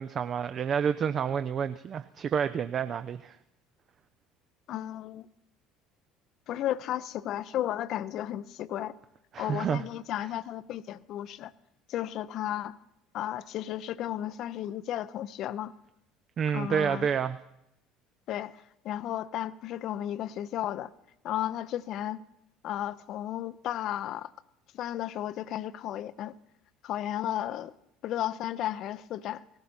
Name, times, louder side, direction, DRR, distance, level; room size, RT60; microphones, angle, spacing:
voice 1, 0.0-3.4 9.3-9.8 16.4-17.4, right 7 dB, 40° right, 12 dB, 0.4 m, -29 dB
voice 2, 4.7-5.3 6.5-9.0 9.4-11.5 11.9-12.8 13.1-15.7 16.5-17.1 18.3-20.9 21.2-22.2 22.6-24.3 24.7-26.4 26.8-27.7 28.0-29.4, left 12 dB, 55° left, 18 dB, 0.5 m, -34 dB
17.5 x 14.5 x 4.2 m, 0.83 s
figure-of-eight pair, 60°, 0 cm